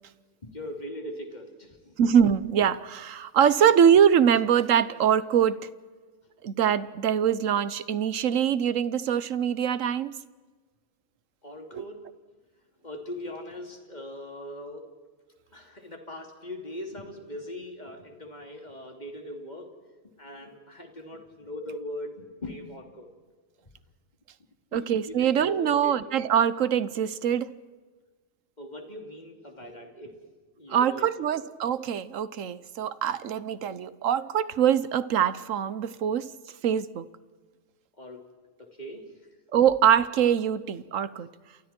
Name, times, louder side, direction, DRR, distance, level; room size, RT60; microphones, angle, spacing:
voice 1, 0.4-1.9 11.4-12.1 12.8-14.9 15.5-19.7 20.2-23.1 24.7-25.9 28.6-30.2 30.5-31.0 31.3-31.5 38.0-38.2 38.6-39.1, left 1 dB, 35° left, 3 dB, 3.2 m, -40 dB
voice 2, 2.0-5.7 6.4-10.1 11.7-11.8 24.7-27.5 30.7-36.3 36.6-37.1 39.5-41.3, right 8 dB, 75° right, 16 dB, 1.3 m, -23 dB
30.0 x 28.0 x 4.5 m, 1.4 s
omnidirectional pair, 1.4 m